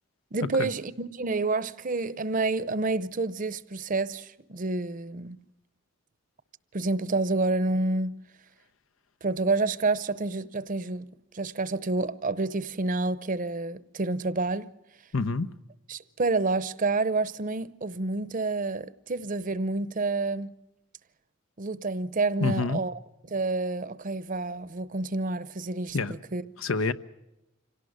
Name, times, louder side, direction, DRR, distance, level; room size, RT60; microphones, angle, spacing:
voice 1, 0.3-5.4 6.7-8.2 9.2-11.1 11.3-14.7 15.9-20.5 21.6-23.0 23.3-26.0 26.3-26.4, right 3 dB, 40° right, 0.7 m, -28 dB
voice 2, 15.1-15.5 22.4-22.8 25.9-26.1 26.6-26.9, left 3 dB, 85° left, 0.9 m, -27 dB
26.0 x 17.5 x 6.5 m
head